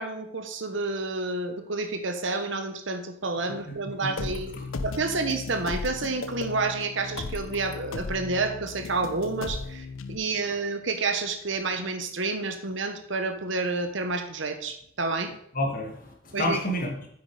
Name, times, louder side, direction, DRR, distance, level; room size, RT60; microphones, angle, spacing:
voice 1, 0.0-4.5 4.8-15.3 16.3-16.6, right 3 dB, 60° right, 7 dB, 1.0 m, -29 dB
voice 2, 3.7-4.3 15.5-17.0, left 1 dB, 40° left, 1 dB, 2.1 m, -30 dB
sound 1, 4.2-10.2, left 3 dB, 70° left, 0.7 m, -36 dB
8.4 x 8.2 x 4.9 m, 0.69 s
head